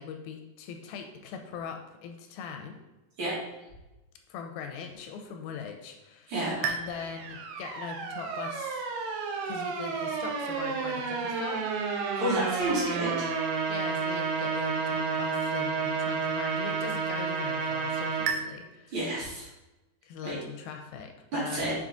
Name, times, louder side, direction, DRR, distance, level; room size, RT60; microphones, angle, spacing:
voice 1, 0.0-2.8 4.3-6.3 6.6-8.9 9.5-12.2 13.7-19.0 20.0-21.6, left 6 dB, 85° left, 4 dB, 2.4 m, -41 dB
sound 1, 6.6-18.4, right 5 dB, 75° right, 2.3 m, -31 dB
voice 2, 12.2-13.3 18.9-19.5 20.2-20.3 21.3-21.7, right 1 dB, 50° right, -8 dB, 3.4 m, -30 dB
7.2 x 4.1 x 3.8 m, 1.0 s
omnidirectional pair, 4.4 m